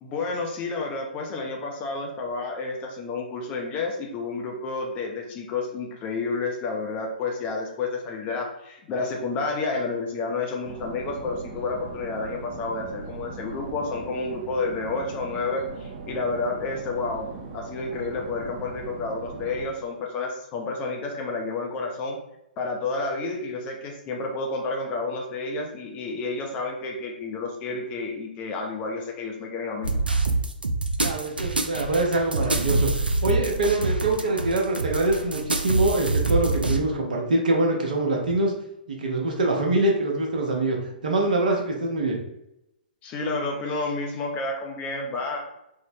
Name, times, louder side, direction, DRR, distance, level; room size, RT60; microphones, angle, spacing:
voice 1, 0.0-22.2 22.6-30.0 43.0-45.4, left 3 dB, 25° left, 1 dB, 0.5 m, -30 dB
sound 1, 10.6-19.7, right 4 dB, 25° right, 0.5 m, -39 dB
sound 2, 29.8-36.8, right 2 dB, 85° right, 0.4 m, -25 dB
voice 2, 31.0-38.5 38.9-40.8 41.0-42.2, right 2 dB, 60° right, 0 dB, 0.8 m, -24 dB
3.7 x 2.1 x 2.6 m, 0.85 s
figure-of-eight pair, 120°, 5 cm